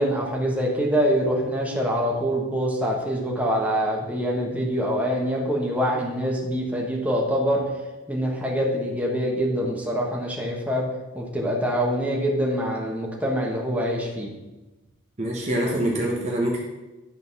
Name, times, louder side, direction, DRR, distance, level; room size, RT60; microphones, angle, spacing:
voice 1, 0.0-7.6 8.1-10.8 11.1-14.3, equal, 5° right, -3 dB, 1.3 m, -25 dB
voice 2, 15.2-16.6, right 1 dB, 35° right, -2 dB, 1.0 m, -25 dB
10.5 x 4.0 x 5.4 m, 1.1 s
head